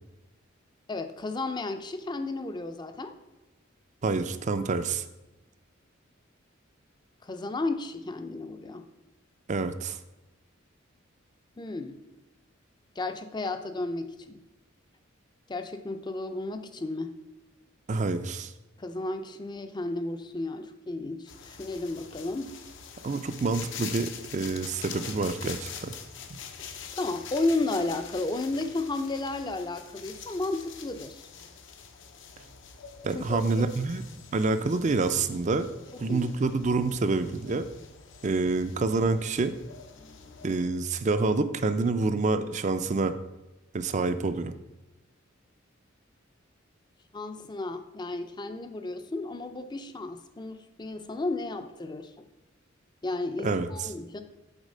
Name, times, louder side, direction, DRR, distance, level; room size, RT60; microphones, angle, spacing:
voice 1, 0.9-3.1 7.2-8.8 11.6-12.0 13.0-14.4 15.5-17.2 18.8-22.6 26.6-31.3 33.1-33.5 36.1-36.3 40.0-40.6 47.1-52.3 53.0-54.2, left 2 dB, 20° left, 8 dB, 0.5 m, -33 dB
voice 2, 4.0-5.0 9.5-10.0 17.9-18.5 23.0-25.9 33.0-34.0 34.3-35.7 36.0-37.7 38.2-39.5 40.4-43.1 43.7-44.5 53.4-53.7, right 3 dB, 35° right, 10 dB, 0.4 m, -27 dB
sound 1, 21.3-40.7, left 7 dB, 65° left, 0.7 m, -45 dB
8.1 x 4.1 x 5.4 m, 1.0 s
head